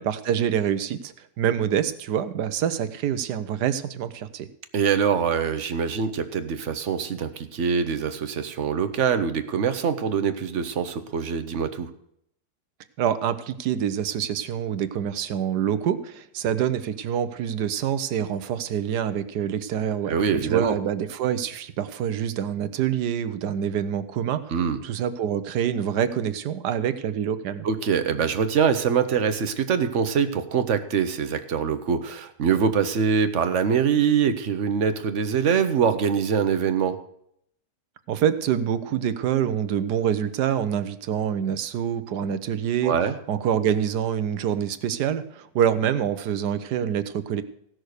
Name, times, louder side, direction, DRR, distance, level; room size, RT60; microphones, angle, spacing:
voice 1, 0.0-4.5 13.0-20.1 20.4-27.7 38.1-42.9 43.3-47.4, right 9 dB, 75° right, 13 dB, 1.3 m, -26 dB
voice 2, 4.7-11.9 20.1-20.8 24.5-24.8 27.6-37.0 42.8-43.2, right 7 dB, 50° right, 10 dB, 1.1 m, -24 dB
16.0 x 6.3 x 6.5 m, 0.73 s
omnidirectional pair, 1.8 m